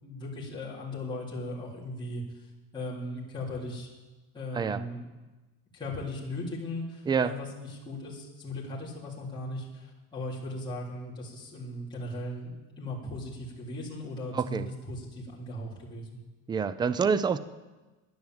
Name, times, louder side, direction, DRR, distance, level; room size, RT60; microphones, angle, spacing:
voice 1, 0.0-2.4 2.7-3.9 4.3-5.0 5.7-16.2, left 1 dB, 10° left, -7 dB, 3.4 m, -38 dB
voice 2, 14.3-14.7 16.5-17.4, right 6 dB, 15° right, 15 dB, 0.3 m, -27 dB
10.5 x 10.5 x 7.8 m, 1.2 s
cardioid pair, 145°, 37 cm